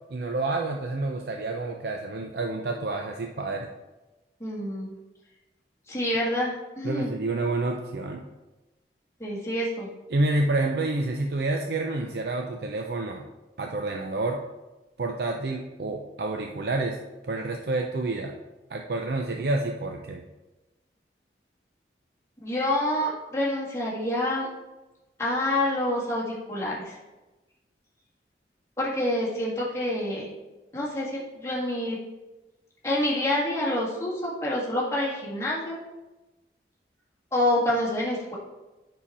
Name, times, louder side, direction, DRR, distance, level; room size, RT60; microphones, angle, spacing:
voice 1, 0.1-3.7 6.8-8.3 10.1-13.3 13.6-14.4 15.0-17.0 17.3-18.4 18.7-20.2, right 2 dB, 65° right, 2 dB, 0.5 m, -28 dB
voice 2, 4.4-4.9 5.9-7.1 9.2-9.9 22.4-24.5 25.2-27.0 28.8-30.3 30.7-32.0 32.8-35.8 37.3-38.3, left 1 dB, 15° left, -6 dB, 1.7 m, -27 dB
7.4 x 5.7 x 4.2 m, 1.1 s
head